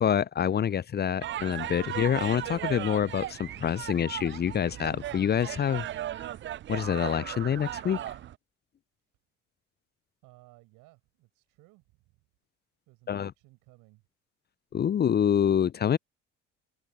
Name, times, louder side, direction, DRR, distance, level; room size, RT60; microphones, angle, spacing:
voice 1, 0.0-5.8 6.7-8.0 13.1-13.3 14.7-16.0, left 8 dB, 30° left, 0.6 m, -26 dB
sound 1, 1.2-8.4, right 12 dB, 35° right, 0.6 m, -37 dB
voice 2, 10.2-12.2 12.9-14.0, right 22 dB, 60° right, 7.1 m, -58 dB
figure-of-eight pair, 50°, 36 cm